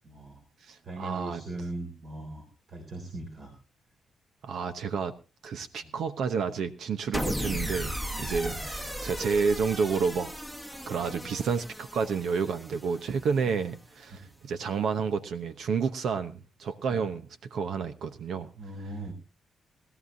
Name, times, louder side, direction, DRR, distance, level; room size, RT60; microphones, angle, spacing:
voice 1, 0.0-0.4 0.8-3.5 5.8-5.9 8.4-8.6 11.2-11.3 14.1-14.3 18.6-19.1, right 2 dB, 50° right, 2 dB, 3.5 m, -39 dB
voice 2, 0.6-1.4 4.4-5.1 5.4-10.3 10.9-18.5, right 5 dB, 70° right, 10 dB, 0.9 m, -30 dB
sound 1, 7.1-13.5, equal, 10° right, 1.1 m, -36 dB
20.0 x 13.0 x 2.6 m, 0.31 s
cardioid pair, 75°, 0 cm